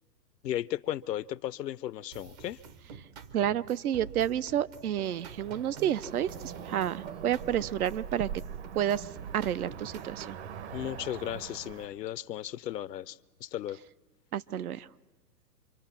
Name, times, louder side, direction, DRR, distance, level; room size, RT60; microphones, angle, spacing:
voice 1, 0.4-2.6 10.7-13.8, left 12 dB, 75° left, 0.7 m, -35 dB
sound 1, 2.1-10.5, right 6 dB, 25° right, 0.7 m, -48 dB
voice 2, 3.3-6.3 6.6-8.3 8.7-9.1 9.3-10.4 14.3-14.9, right 10 dB, 60° right, 0.7 m, -30 dB
Cricket / Motor vehicle (road), 5.0-11.9, right 8 dB, 40° right, 1.1 m, -43 dB
26.5 x 24.0 x 6.0 m
hypercardioid pair, 140°, 50 cm